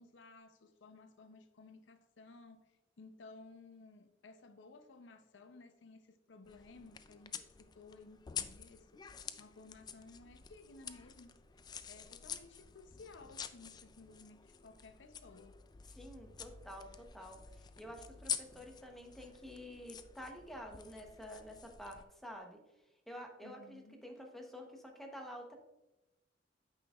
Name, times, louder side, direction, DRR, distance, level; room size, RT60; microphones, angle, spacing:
voice 1, 0.0-9.0 9.4-11.4 11.9-15.6 23.4-24.0, left 3 dB, 75° left, 0.6 m, -57 dB
sound 1, 6.4-22.0, left 7 dB, 25° left, 0.3 m, -48 dB
voice 2, 15.9-22.6 23.1-25.6, equal, ahead, 0.9 m, -49 dB
8.8 x 5.9 x 2.4 m
head